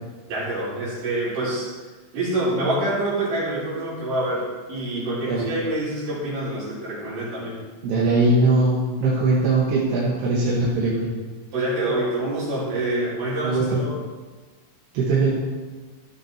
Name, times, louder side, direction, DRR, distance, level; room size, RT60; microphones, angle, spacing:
voice 1, 0.3-1.7 2.1-7.6 11.5-13.9, right 1 dB, 50° right, -9 dB, 6.0 m, -26 dB
voice 2, 7.8-11.1 13.4-13.8 14.9-15.4, right 2 dB, 80° right, -7 dB, 3.9 m, -20 dB
15.0 x 7.5 x 4.5 m, 1.3 s
omnidirectional pair, 4.7 m